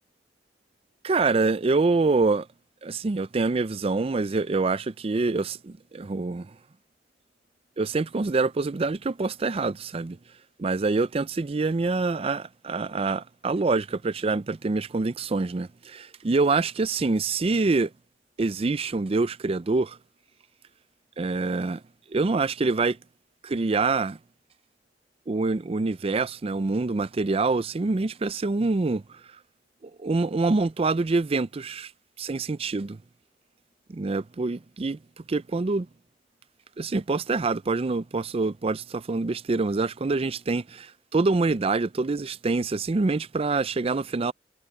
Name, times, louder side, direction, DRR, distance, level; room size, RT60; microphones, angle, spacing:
voice 1, 1.0-2.5 2.8-6.5 7.8-10.2 10.6-17.9 18.4-20.0 21.2-21.8 22.1-23.0 23.4-24.2 25.3-29.0 29.8-31.9 32.2-33.0 33.9-35.0 35.3-35.9 36.8-44.3, right 3 dB, 35° right, 0.4 m, -25 dB
head